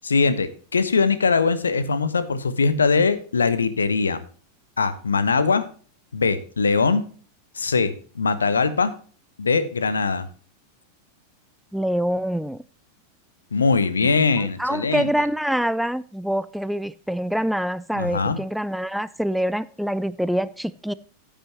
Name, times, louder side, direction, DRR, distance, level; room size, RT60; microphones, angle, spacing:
voice 1, 0.0-4.2 4.8-5.7 6.1-7.0 7.5-8.9 9.4-10.3 13.5-15.1 17.9-18.4, left 4 dB, 75° left, 13 dB, 1.1 m, -21 dB
voice 2, 11.7-12.6 14.4-20.9, equal, ahead, 17 dB, 0.4 m, -25 dB
14.5 x 8.9 x 2.9 m, 0.41 s
figure-of-eight pair, 90°, 0 cm